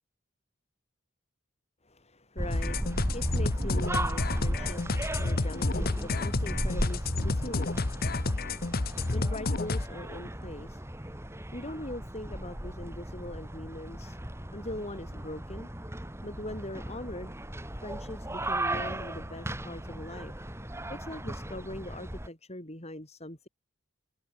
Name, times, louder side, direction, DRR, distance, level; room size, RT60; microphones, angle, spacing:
voice 1, 1.8-14.2 14.5-15.7 16.2-17.4 17.8-20.3 20.9-23.5, left 1 dB, 30° left, 7.5 m, -42 dB
sound 1, 2.4-22.3, right 1 dB, 10° right, 2.8 m, -36 dB
sound 2, 2.5-9.9, left 2 dB, 45° left, 1.1 m, -30 dB
head